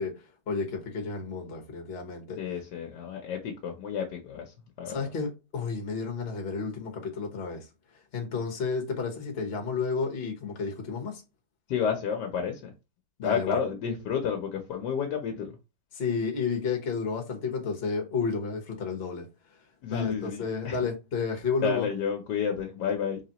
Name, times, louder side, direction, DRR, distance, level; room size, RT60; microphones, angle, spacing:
voice 1, 0.0-2.4 4.8-7.7 8.1-11.2 13.2-13.6 15.9-19.3 19.9-21.9, left 5 dB, 45° left, 1.1 m, -31 dB
voice 2, 2.4-5.0 11.7-12.7 13.2-15.5 19.8-20.8 21.6-23.2, left 7 dB, 80° left, 1.4 m, -31 dB
4.0 x 3.5 x 2.9 m
omnidirectional pair, 1.8 m